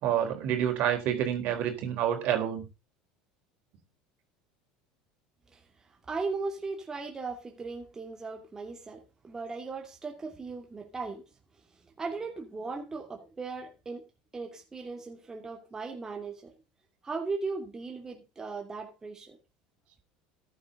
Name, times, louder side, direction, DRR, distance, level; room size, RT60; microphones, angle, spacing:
voice 1, 0.0-2.6, right 10 dB, 60° right, 4.2 m, -28 dB
voice 2, 6.1-11.2 12.0-14.0 14.3-16.5 17.0-19.4, right 4 dB, 20° right, 2.6 m, -37 dB
14.5 x 10.5 x 3.9 m
supercardioid pair, 115°, 3 cm